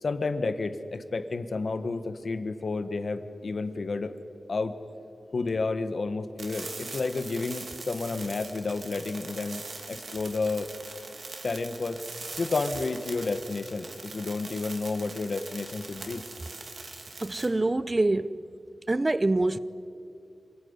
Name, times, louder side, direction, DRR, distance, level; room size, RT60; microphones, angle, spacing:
voice 1, 0.0-4.2 4.5-4.8 5.3-9.6 9.9-10.7 11.4-12.0 12.4-16.2, left 3 dB, 65° left, 1.5 m, -31 dB
sound 1, 6.4-17.5, right 3 dB, 65° right, 3.3 m, -42 dB
voice 2, 17.2-18.4 18.9-19.6, right 2 dB, 30° right, 0.7 m, -25 dB
26.5 x 18.5 x 9.8 m
wide cardioid pair, 105°, 0 cm